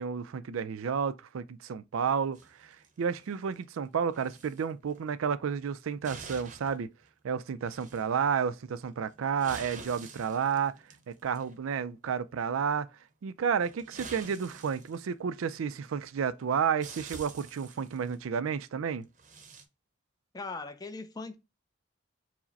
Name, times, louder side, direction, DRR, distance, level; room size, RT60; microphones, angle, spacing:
voice 1, 0.0-6.9 7.2-10.7 11.1-12.9 13.2-19.1, right 7 dB, 90° right, 0.4 m, -31 dB
sound 1, 2.3-3.7 4.1-4.6 4.9-5.1 5.7-6.8 7.0-7.1 7.6-8.2 8.9-11.6 13.6-15.6 16.4-16.5 16.8-18.2 19.0-19.6, right 4 dB, 40° right, 0.7 m, -48 dB
voice 2, 20.3-21.4, left 3 dB, 20° left, 0.4 m, -39 dB
4.8 x 2.1 x 4.0 m
head